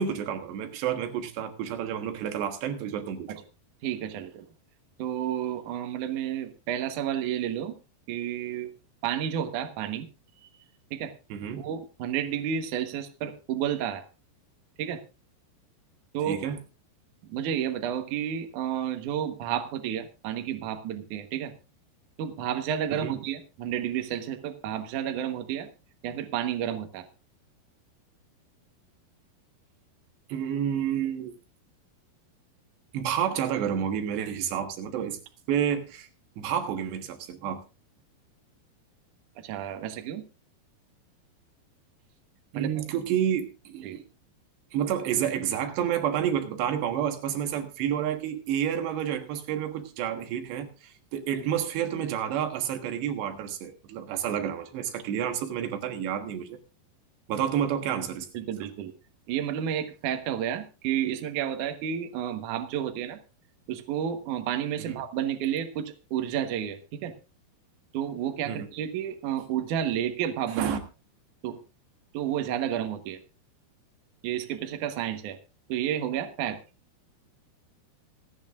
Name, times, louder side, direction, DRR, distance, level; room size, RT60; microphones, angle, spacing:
voice 1, 0.0-3.3 11.3-11.6 16.2-16.6 23.0-23.2 30.3-31.3 32.9-35.2 35.5-36.1 36.4-37.6 42.5-44.0 44.7-56.6 57.3-58.3 64.8-65.0 68.5-68.7 70.6-70.8, right 9 dB, 80° right, 6 dB, 3.6 m, -29 dB
voice 2, 3.8-4.5 5.0-7.7 8.1-8.7 9.0-10.1 10.9-11.1 11.6-14.0 14.8-15.0 16.1-16.4 17.3-21.5 22.2-25.7 26.0-27.1 39.4-40.2 42.5-42.7 43.8-44.0 58.3-58.9 59.3-63.2 63.7-67.1 67.9-70.7 71.4-71.6 72.1-73.2 74.2-75.4 75.7-76.6, right 10 dB, 65° right, 6 dB, 2.2 m, -31 dB
26.5 x 9.0 x 2.5 m, 0.31 s
omnidirectional pair, 4.9 m